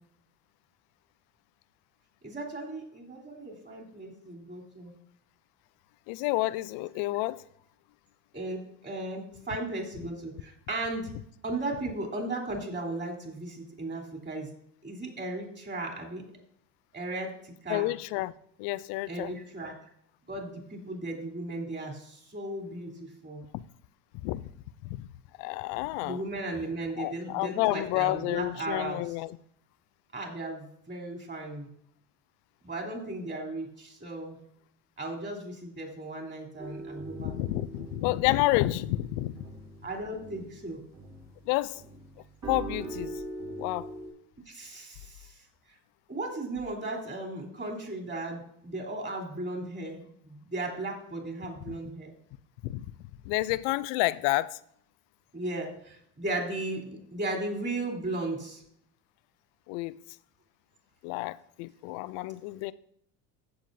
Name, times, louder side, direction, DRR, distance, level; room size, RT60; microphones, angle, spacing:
voice 1, 2.2-4.9 8.3-11.1 11.4-14.5 14.8-16.3 16.9-17.9 19.1-19.7 20.3-23.4 26.0-29.1 30.1-31.7 32.6-34.4 35.0-37.3 39.8-40.8 44.5-45.4 46.1-52.1 55.3-58.6, right 2 dB, 25° right, 3.6 m, -36 dB
voice 2, 6.1-7.4 17.7-18.3 18.6-19.3 24.2-24.4 24.8-25.1 25.4-26.2 27.0-29.3 37.2-39.3 41.5-41.8 42.5-43.2 43.6-43.9 51.7-51.8 52.6-52.8 53.2-54.6 59.7-59.9 61.0-62.7, left 18 dB, 65° left, 0.6 m, -29 dB
sound 1, 36.6-41.4 41.8-44.1, right 2 dB, 40° right, 3.5 m, -42 dB
15.5 x 7.1 x 2.7 m
hypercardioid pair, 75°, 47 cm